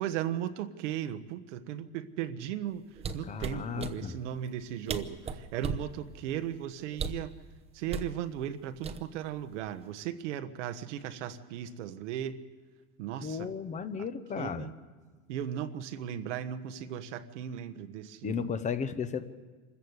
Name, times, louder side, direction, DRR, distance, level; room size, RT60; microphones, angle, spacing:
voice 1, 0.0-2.8 3.1-7.3 7.7-12.4 13.0-13.5 14.4-14.7 15.3-18.4, right 10 dB, 85° right, 10 dB, 1.3 m, -36 dB
sound 1, 3.0-4.0 4.6-4.7 4.9-5.9 6.9-7.3 7.9-8.1 8.8-9.3 9.6-9.9, right 5 dB, 15° right, 0.8 m, -35 dB
voice 2, 3.3-4.1 13.2-14.7 18.2-19.2, left 6 dB, 20° left, 12 dB, 0.8 m, -34 dB
26.0 x 14.0 x 8.1 m, 1.4 s
supercardioid pair, 150°, 35 cm